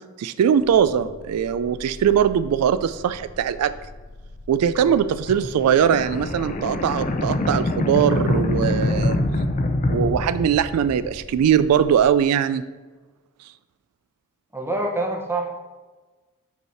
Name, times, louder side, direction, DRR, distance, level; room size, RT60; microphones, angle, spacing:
voice 1, 0.2-3.7 4.5-9.2 9.9-12.6, right 8 dB, 85° right, 14 dB, 0.3 m, -21 dB
sound 1, 0.6-12.1, left 1 dB, 55° left, 1.0 m, -43 dB
sound 2, 5.3-11.1, left 2 dB, 35° left, 0.5 m, -24 dB
voice 2, 14.5-15.5, right 2 dB, 10° right, 2 dB, 0.8 m, -26 dB
5.4 x 4.7 x 5.7 m, 1.3 s
head